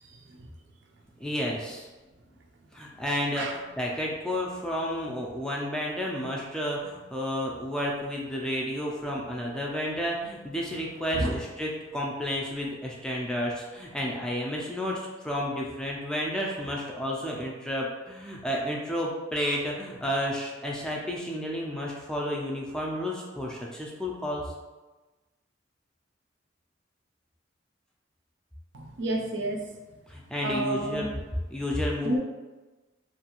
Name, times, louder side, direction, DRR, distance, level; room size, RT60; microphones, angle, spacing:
voice 1, 1.2-1.9 2.7-24.4 30.1-31.2 31.5-32.2, equal, 5° left, -3 dB, 0.3 m, -31 dB
voice 2, 28.7-29.6 30.4-31.0 32.0-32.2, right 1 dB, 75° right, 1 dB, 0.4 m, -29 dB
2.5 x 2.3 x 2.9 m, 1.2 s
head